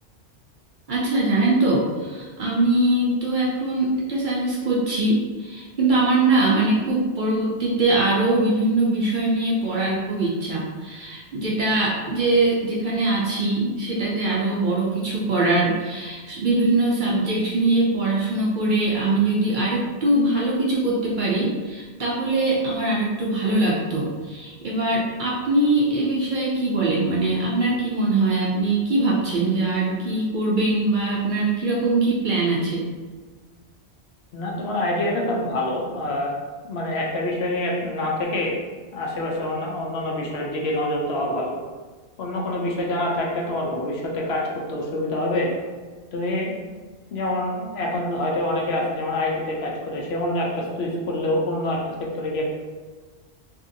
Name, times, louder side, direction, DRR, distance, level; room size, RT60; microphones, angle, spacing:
voice 1, 0.9-32.9, right 2 dB, 60° right, -4 dB, 0.5 m, -22 dB
voice 2, 34.3-36.3 36.6-38.6 38.9-41.5 42.2-44.4 44.7-45.5 46.1-46.5 47.1-52.5, left 1 dB, 70° left, -1 dB, 0.8 m, -26 dB
2.7 x 2.6 x 2.6 m, 1.4 s
omnidirectional pair, 1.2 m